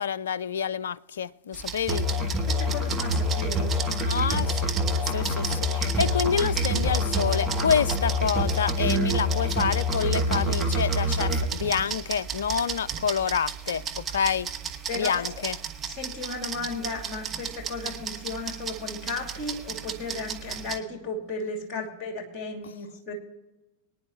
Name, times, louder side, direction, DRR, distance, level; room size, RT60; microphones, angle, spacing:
voice 1, 0.0-2.1 4.1-4.7 5.0-14.5 14.9-15.6 22.6-22.7, left 7 dB, 65° left, 0.3 m, -28 dB
sound 1, 1.5-20.8, right 7 dB, 20° right, 1.1 m, -35 dB
Musical instrument, 1.9-11.5, left 1 dB, ahead, 1.9 m, -26 dB
voice 2, 2.4-3.7 14.9-15.2 15.9-23.1, left 3 dB, 30° left, 2.7 m, -35 dB
23.0 x 9.9 x 3.1 m
figure-of-eight pair, 90°, 0 cm